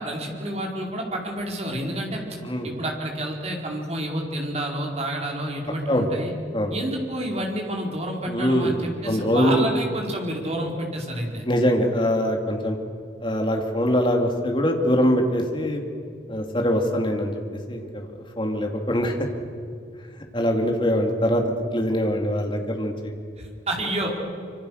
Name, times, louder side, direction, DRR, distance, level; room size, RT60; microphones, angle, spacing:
voice 1, 0.0-6.3 6.7-11.4 23.4-24.1, right 1 dB, 35° right, 0 dB, 4.7 m, -29 dB
voice 2, 8.3-9.6 11.5-12.8 13.2-15.8 16.3-17.4 17.7-18.1 18.4-19.1 20.3-21.4 21.7-23.1, equal, 25° left, 2 dB, 2.7 m, -23 dB
25.5 x 25.5 x 6.6 m, 2.3 s
head